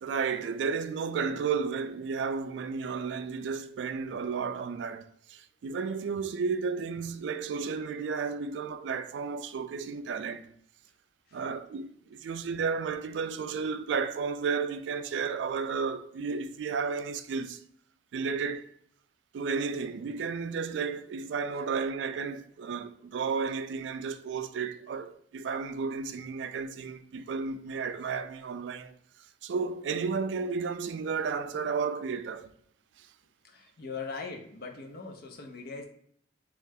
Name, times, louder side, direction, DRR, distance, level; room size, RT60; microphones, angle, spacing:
voice 1, 0.0-10.5 11.3-17.6 18.1-18.7 19.3-28.9 29.4-32.5 33.0-33.1, right 5 dB, 80° right, 0.3 m, -33 dB
voice 2, 33.4-35.9, left 4 dB, 55° left, 0.6 m, -41 dB
3.2 x 2.4 x 3.4 m
head